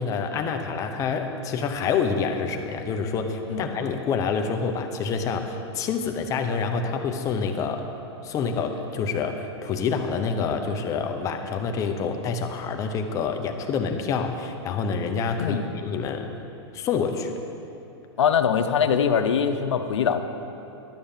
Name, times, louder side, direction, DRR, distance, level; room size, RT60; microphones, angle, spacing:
voice 1, 0.0-7.9 8.2-16.3 16.7-17.3, left 5 dB, 20° left, 5 dB, 0.8 m, -27 dB
voice 2, 18.2-20.2, left 7 dB, 85° left, 7 dB, 0.8 m, -22 dB
12.0 x 6.4 x 7.3 m, 3.0 s
hypercardioid pair, 150°, 15 cm